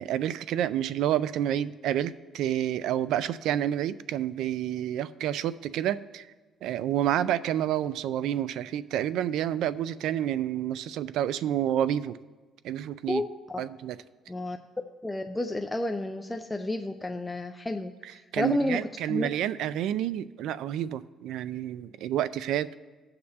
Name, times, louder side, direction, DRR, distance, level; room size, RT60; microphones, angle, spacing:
voice 1, 0.0-6.3 6.6-12.2 12.6-13.2 13.6-14.0 18.0-22.7, right 11 dB, 80° right, 16 dB, 0.3 m, -29 dB
voice 2, 13.1-13.6 14.3-14.6 15.0-18.8 19.1-19.3, left 1 dB, 10° left, 4 dB, 0.3 m, -31 dB
16.0 x 6.6 x 2.8 m, 1.3 s
cardioid pair, 135°, 0 cm